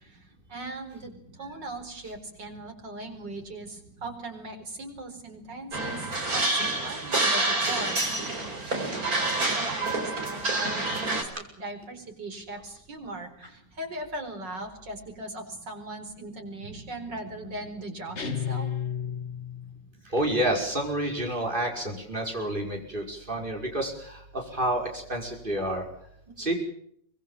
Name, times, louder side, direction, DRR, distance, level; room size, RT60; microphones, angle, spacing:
voice 1, 0.0-18.7 26.3-26.5, right 2 dB, 75° right, 4 dB, 5.2 m, -39 dB
sound 1, 5.7-11.2, right 2 dB, 55° right, 4.8 m, -27 dB
sound 2, 18.2-19.9, left 8 dB, 40° left, 2.2 m, -32 dB
voice 2, 20.1-25.8 26.4-26.5, right 1 dB, 25° right, 1 dB, 5.8 m, -29 dB
24.5 x 21.5 x 7.6 m, 0.69 s
omnidirectional pair, 1.9 m